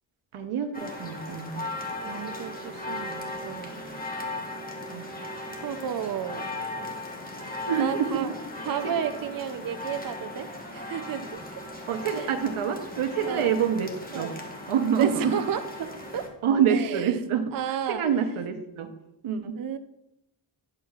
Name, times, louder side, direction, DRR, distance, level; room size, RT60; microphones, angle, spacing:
voice 1, 0.3-1.7 4.9-5.1 7.6-8.3 8.8-8.9 11.9-14.3 14.7-15.4 16.4-18.9 19.2-19.5, right 7 dB, 85° right, 7 dB, 0.9 m, -26 dB
sound 1, 0.7-16.3, left 2 dB, 20° left, 1.2 m, -37 dB
voice 2, 2.0-3.8 5.6-6.5 7.8-8.3 8.6-11.4 12.1-12.3 13.2-13.5 14.1-14.3 15.0-16.3 16.7-17.1 17.5-18.0 19.6-19.8, right 9 dB, 45° right, 9 dB, 0.5 m, -32 dB
10.0 x 6.8 x 2.4 m, 0.85 s
wide cardioid pair, 100°, 49 cm